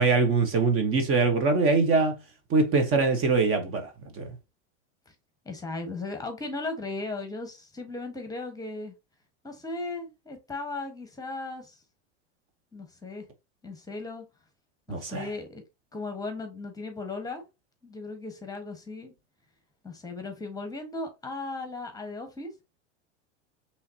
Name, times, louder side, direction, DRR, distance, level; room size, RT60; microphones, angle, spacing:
voice 1, 0.0-2.2 2.5-4.3 14.9-15.3, right 4 dB, 35° right, 1.1 m, -23 dB
voice 2, 5.4-8.9 9.4-11.8 12.7-13.3 13.6-14.2 14.9-15.6 15.9-17.4 17.8-19.1 19.8-22.5, left 3 dB, 10° left, 1.2 m, -36 dB
5.6 x 3.2 x 2.8 m
hypercardioid pair, 105°, 37 cm